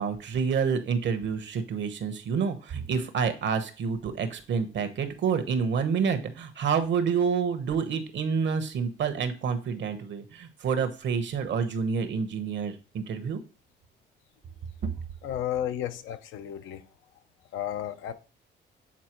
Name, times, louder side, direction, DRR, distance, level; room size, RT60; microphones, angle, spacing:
voice 1, 0.0-13.4, right 6 dB, 65° right, 1.1 m, -28 dB
voice 2, 15.2-16.9 17.5-18.1, left 11 dB, 90° left, 0.7 m, -33 dB
7.3 x 4.3 x 3.0 m
cardioid pair, 90°, 20 cm